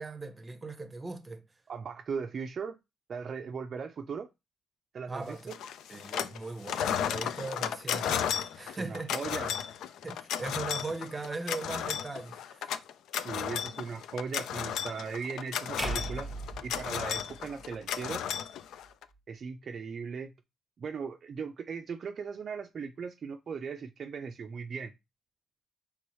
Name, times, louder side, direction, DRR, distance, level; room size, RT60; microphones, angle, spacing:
voice 1, 0.0-1.4 5.1-5.5 5.9-9.2 10.0-12.8, right 3 dB, 20° right, 0.7 m, -39 dB
voice 2, 1.7-2.8 3.1-4.3 4.9-5.5 8.7-9.6 13.2-16.3 16.6-18.2 19.3-20.3 20.8-24.9, right 5 dB, 50° right, 0.4 m, -38 dB
sound 1, 5.5-6.4 6.6-19.0, left 9 dB, 80° left, 0.3 m, -34 dB
sound 2, 15.8-18.0, right 1 dB, 5° left, 0.9 m, -38 dB
4.6 x 3.4 x 3.0 m
cardioid pair, 90°, 0 cm